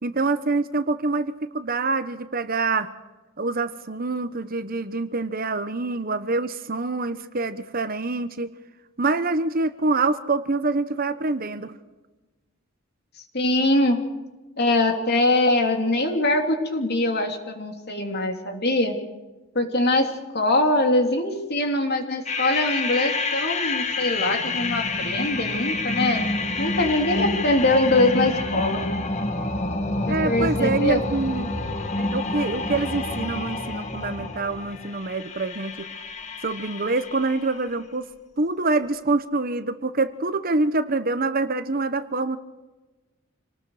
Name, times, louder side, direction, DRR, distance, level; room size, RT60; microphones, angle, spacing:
voice 1, 0.0-2.9 3.4-8.5 9.0-11.7 30.1-31.6 32.0-35.9 36.4-38.1 38.4-42.4, right 3 dB, 45° right, 11 dB, 1.1 m, -25 dB
voice 2, 13.3-14.0 14.6-19.0 19.5-26.2 26.6-28.8 30.1-31.1, left 2 dB, 50° left, 4 dB, 3.2 m, -22 dB
sound 1, 22.3-37.6, left 2 dB, 35° left, 1.6 m, -28 dB
27.5 x 19.5 x 5.0 m, 1.2 s
head